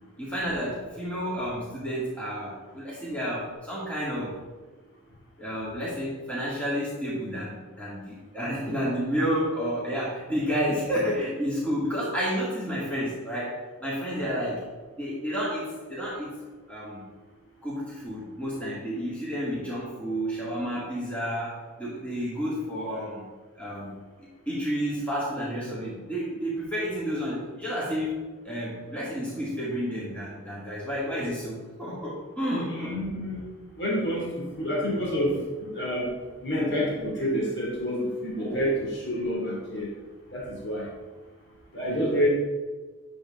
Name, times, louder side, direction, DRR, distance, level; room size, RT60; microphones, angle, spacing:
voice 1, 0.2-4.4 5.4-14.7 15.0-16.4 16.7-17.0 17.6-23.2 23.6-23.9 24.5-28.1 28.4-33.0 38.4-38.7 41.9-42.0, equal, 5° left, -8 dB, 2.1 m, -31 dB
voice 2, 32.7-33.4 33.8-36.1 36.4-39.9 40.3-40.9 41.7-42.3, equal, 50° left, -3 dB, 2.6 m, -28 dB
10.0 x 7.1 x 3.7 m, 1.3 s
head